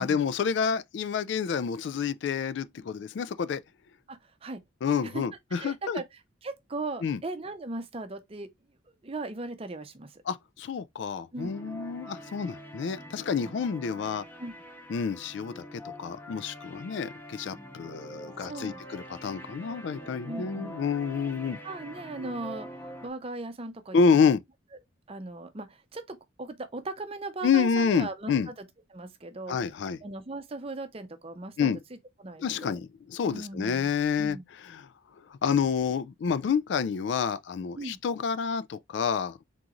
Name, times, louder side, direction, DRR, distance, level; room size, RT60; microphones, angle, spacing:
voice 1, 0.0-3.6 4.8-6.0 7.0-7.2 10.3-14.2 14.9-21.6 23.9-24.4 27.4-28.5 29.5-30.0 31.6-31.8 32.4-34.4 34.6-34.9 35.3-39.5, left 6 dB, 60° left, 0.3 m, -28 dB
voice 2, 4.1-4.6 5.0-5.2 5.5-8.5 8.9-10.2 11.3-11.5 13.4-13.6 14.4-14.5 18.4-18.8 20.2-20.8 21.6-24.3 25.1-28.5 28.9-29.6 30.0-32.8 33.3-34.4 37.8-38.0, right 2 dB, 30° right, 0.6 m, -38 dB
sound 1, 11.4-23.1, equal, 10° left, 0.8 m, -44 dB
3.7 x 3.0 x 3.7 m
head